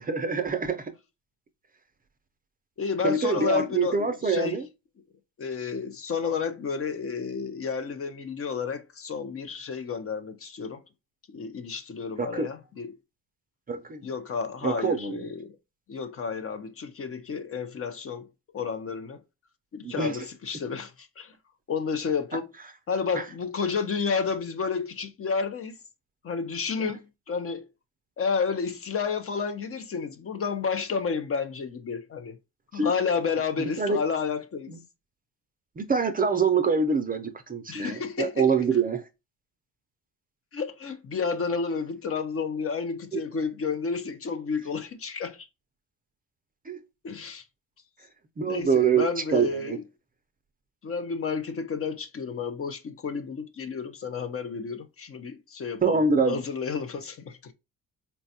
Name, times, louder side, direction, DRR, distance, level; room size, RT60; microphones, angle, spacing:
voice 1, 0.1-0.8 3.0-4.7 12.2-12.5 13.7-14.0 14.6-15.2 19.8-20.2 32.7-32.9 33.6-34.0 35.8-39.0 46.7-46.8 48.4-49.0 49.3-49.8 55.8-56.4, right 5 dB, 25° right, 0.4 m, -25 dB
voice 2, 2.8-4.6 5.4-10.8 11.3-12.9 14.0-15.5 15.9-18.3 18.5-19.2 19.7-21.3 21.7-22.5 22.9-25.8 26.2-27.0 27.3-27.7 28.2-32.4 32.7-34.7 37.7-38.5 40.5-45.5 47.0-47.4 48.5-49.8 50.8-57.5, left 5 dB, 40° left, 0.5 m, -31 dB
4.2 x 2.3 x 2.6 m
cardioid pair, 110°, 36 cm